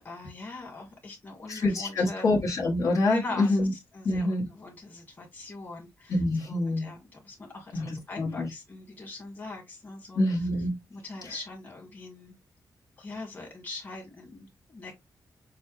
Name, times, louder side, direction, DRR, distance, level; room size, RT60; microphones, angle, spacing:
voice 1, 0.0-2.3 3.1-10.5 10.9-12.4 13.0-15.0, left 2 dB, 25° left, 1.9 m, -42 dB
voice 2, 1.5-3.7 4.0-4.5 6.1-6.9 7.7-8.5 10.1-10.8 11.2-11.3, left 2 dB, 50° left, 1.5 m, -26 dB
6.4 x 2.3 x 3.1 m
wide cardioid pair, 175°, 7 cm